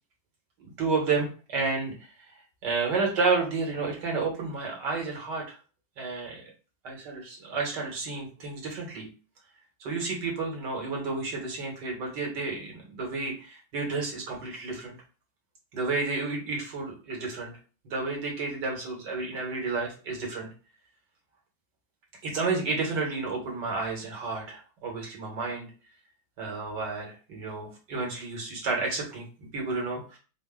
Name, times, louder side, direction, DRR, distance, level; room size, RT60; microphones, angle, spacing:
voice 1, 0.6-1.9 2.6-5.6 6.0-6.5 6.8-9.1 9.8-15.0 15.7-17.5 17.8-20.5 22.2-25.7 26.4-30.2, right 4 dB, 65° right, 0 dB, 1.9 m, -31 dB
5.0 x 2.1 x 3.7 m, 0.36 s
omnidirectional pair, 2.0 m